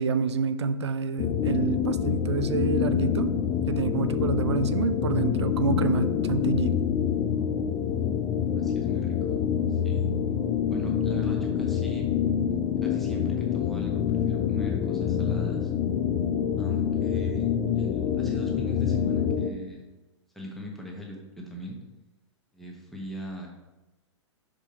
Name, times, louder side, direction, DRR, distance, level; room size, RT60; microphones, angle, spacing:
voice 1, 0.0-3.3 3.7-6.8, right 5 dB, 65° right, 12 dB, 0.4 m, -28 dB
sound 1, 1.2-19.5, left 8 dB, 25° left, 0.4 m, -26 dB
voice 2, 8.5-9.4 9.7-10.1 10.7-12.1 12.8-15.7 16.6-19.9 20.3-21.8 22.5-23.5, left 1 dB, ahead, -2 dB, 1.2 m, -41 dB
6.1 x 5.0 x 4.3 m, 1.1 s
figure-of-eight pair, 110°, 16 cm